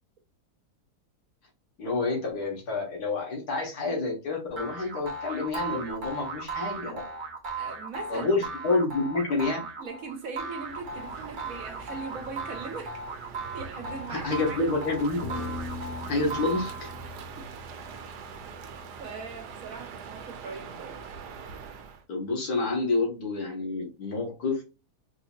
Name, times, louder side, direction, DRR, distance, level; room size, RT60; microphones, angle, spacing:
voice 1, 1.8-7.0 8.1-9.7 14.1-15.2 16.1-16.9 22.1-24.7, left 3 dB, 70° left, 2.0 m, -28 dB
sound 1, 4.6-17.1, right 3 dB, 40° right, 0.8 m, -37 dB
voice 2, 7.6-8.3 9.8-13.0 13.5-14.6 17.4-17.5 19.0-21.0, right 4 dB, 60° right, 1.3 m, -40 dB
Crow, 10.6-22.0, right 6 dB, 80° right, 1.3 m, -43 dB
sound 2, 15.2-19.7, left 3 dB, 45° left, 1.3 m, -40 dB
4.8 x 2.8 x 2.3 m
omnidirectional pair, 1.7 m